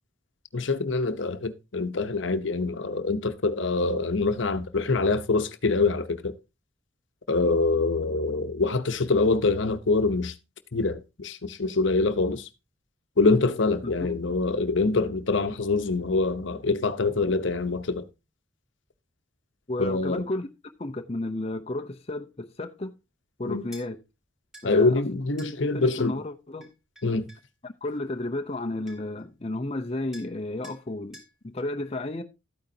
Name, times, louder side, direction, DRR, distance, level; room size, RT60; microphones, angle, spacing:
voice 1, 0.5-6.3 7.3-10.3 10.7-12.4 13.2-18.0 19.8-20.2 23.5-23.6 24.6-26.1 27.0-27.3, left 3 dB, 65° left, 0.9 m, -25 dB
voice 2, 13.8-14.2 19.7-20.5 20.8-22.9 23.4-24.0 24.6-25.1 25.5-26.7 27.6-32.2, left 2 dB, 30° left, 0.7 m, -33 dB
sound 1, 23.7-23.9 24.5-24.7 25.4-25.6 26.6-27.5 28.5-28.6 28.9-29.2 30.1-30.4 30.6-30.8 31.1-31.3, equal, 5° right, 3.8 m, -49 dB
13.0 x 9.2 x 2.8 m
head